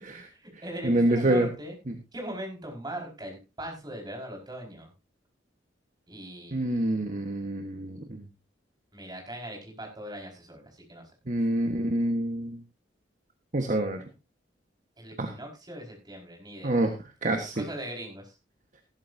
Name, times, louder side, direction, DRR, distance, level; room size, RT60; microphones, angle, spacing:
voice 1, 0.2-1.7 2.1-4.9 6.1-7.0 8.9-11.1 15.0-16.8 17.5-18.3, right 1 dB, 25° right, 1 dB, 5.1 m, -40 dB
voice 2, 0.8-1.5 1.9-2.0 6.5-8.2 11.3-12.6 13.5-14.0 15.2-15.3 16.6-16.9 17.2-17.6, right 1 dB, 45° right, 5 dB, 1.4 m, -26 dB
15.5 x 13.0 x 2.7 m, 0.26 s
head